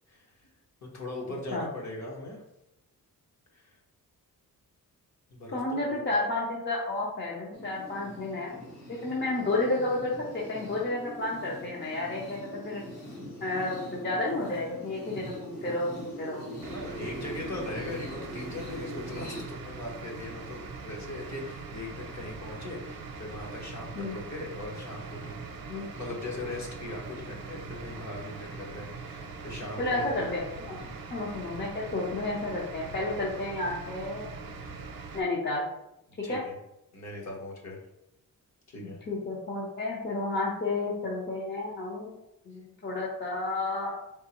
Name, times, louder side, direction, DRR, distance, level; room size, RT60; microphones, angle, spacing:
voice 1, 0.1-0.5 0.8-2.4 3.5-3.8 5.3-5.6 5.9-6.0 8.9-9.0 13.6-13.8 16.6-25.4 25.9-30.1 30.8-31.0 36.2-36.6 36.9-37.8 38.7-39.0, left 2 dB, 50° left, -2 dB, 1.1 m, -40 dB
voice 2, 5.5-8.5 8.9-12.8 13.4-16.5 24.0-24.1 25.7-25.9 29.8-30.8 31.1-34.3 35.1-35.7 36.3-36.4 38.8-42.1 42.5-43.9, left 2 dB, 30° left, -4 dB, 0.6 m, -31 dB
sound 1, 7.5-19.4, equal, 70° left, 1.3 m, -42 dB
sound 2, 16.6-35.2, right 4 dB, 65° right, 0.7 m, -42 dB
4.1 x 3.6 x 2.9 m, 0.85 s
wide cardioid pair, 180°, 36 cm